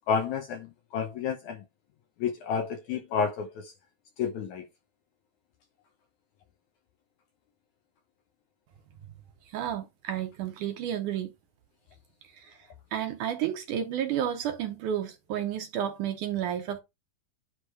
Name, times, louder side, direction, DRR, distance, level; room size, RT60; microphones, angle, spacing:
voice 1, 0.1-0.7 0.9-1.6 2.2-3.7 4.2-4.6, left 6 dB, 75° left, 1.8 m, -30 dB
voice 2, 9.5-11.3 12.4-12.6 12.9-16.8, right 10 dB, 70° right, 2.1 m, -31 dB
9.8 x 3.4 x 4.6 m
omnidirectional pair, 4.3 m